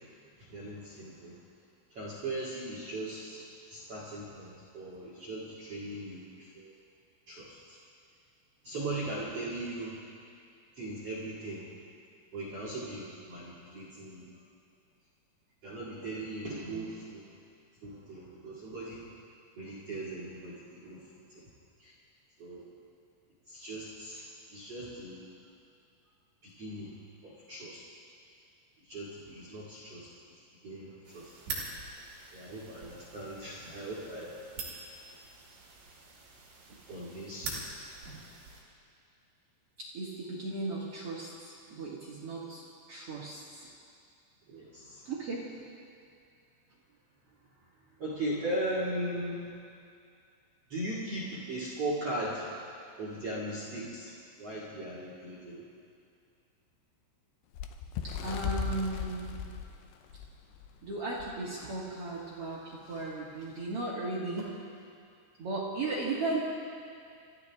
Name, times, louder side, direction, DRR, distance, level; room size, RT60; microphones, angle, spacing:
voice 1, 0.4-1.4 1.9-3.4 3.7-6.7 7.3-7.8 8.6-10.0 10.8-11.7 12.3-14.3 15.6-17.3 17.8-19.1 19.6-21.4 21.8-21.9 22.4-22.6 23.5-25.3 26.4-27.0 27.2-27.8 28.9-30.1 30.6-31.3 32.3-34.3 36.9-37.6 44.5-45.1 48.0-49.5 50.7-52.5 53.0-54.1 54.4-55.6, right 1 dB, 45° right, -7 dB, 2.2 m, -38 dB
sound 1, 31.0-38.6, right 4 dB, 60° right, 4.5 m, -44 dB
voice 2, 39.8-43.7 45.0-45.4 58.0-59.3 60.8-64.6 65.4-66.4, right 2 dB, 85° right, -7 dB, 1.3 m, -36 dB
Bird, 57.5-60.7 61.2-61.4 61.6-61.9 62.7-62.8, left 6 dB, 85° left, 2.4 m, -37 dB
27.5 x 13.5 x 3.5 m, 2.4 s
omnidirectional pair, 5.6 m